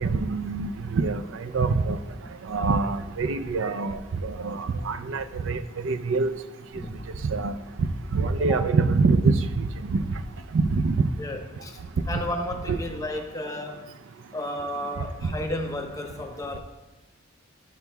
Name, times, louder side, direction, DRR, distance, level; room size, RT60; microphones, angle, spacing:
voice 1, 0.0-2.0 2.5-6.3 7.3-7.5 8.1-10.0 10.5-11.1 12.7-12.8, right 4 dB, 60° right, 9 dB, 0.4 m, -25 dB
voice 2, 6.8-7.3 8.4-8.7 11.2-11.8 12.1-13.9 14.3-16.6, left 1 dB, 15° left, 4 dB, 0.7 m, -33 dB
12.5 x 7.0 x 2.3 m, 1.1 s
head